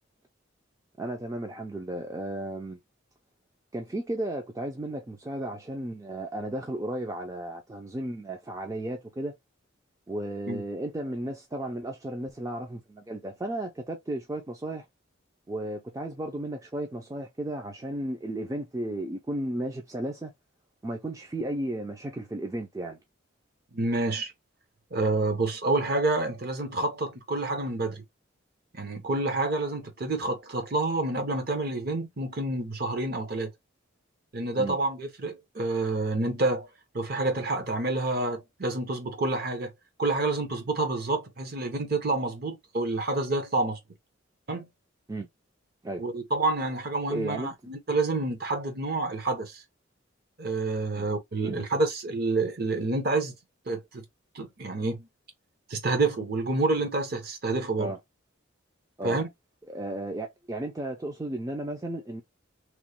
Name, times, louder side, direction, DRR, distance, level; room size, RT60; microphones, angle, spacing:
voice 1, 1.0-2.8 3.7-9.3 10.1-14.8 15.5-20.3 20.8-23.0 34.6-34.8 45.1-45.3 45.8-46.0 47.1-47.5 50.9-51.1 51.4-51.6 57.8-58.0 59.0-59.2 59.7-62.2, right 1 dB, 15° right, 0.3 m, -34 dB
voice 2, 23.7-24.3 24.9-28.0 28.7-33.5 34.3-36.7 36.9-39.7 40.0-43.8 44.5-44.7 46.0-49.6 50.4-53.3 53.7-54.0 54.3-55.1 55.7-57.9 59.0-59.3, right 2 dB, 50° right, 0.8 m, -28 dB
3.0 x 2.1 x 2.9 m
head